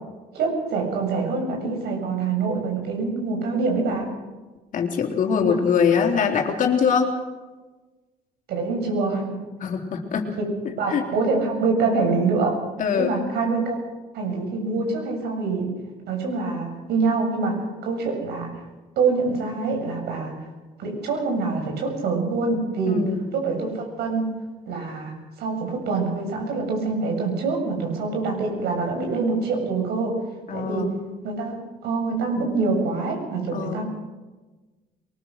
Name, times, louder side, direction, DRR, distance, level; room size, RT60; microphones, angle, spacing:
voice 1, 0.3-4.1 5.5-5.6 8.5-9.4 10.4-10.5 10.8-12.6 13.0-13.8 14.1-15.7 16.1-18.6 19.0-20.5 20.8-23.0 23.3-24.3 24.7-30.2 30.5-30.9 31.2-31.5 31.8-33.9, right 4 dB, 75° right, 2 dB, 7.6 m, -25 dB
voice 2, 4.7-7.1 9.6-10.3 10.9-11.0 12.8-13.1 22.9-23.2 30.5-30.9 33.5-33.8, left 6 dB, 50° left, 3 dB, 3.8 m, -22 dB
23.5 x 20.0 x 6.6 m, 1.2 s
cardioid pair, 110°, 17 cm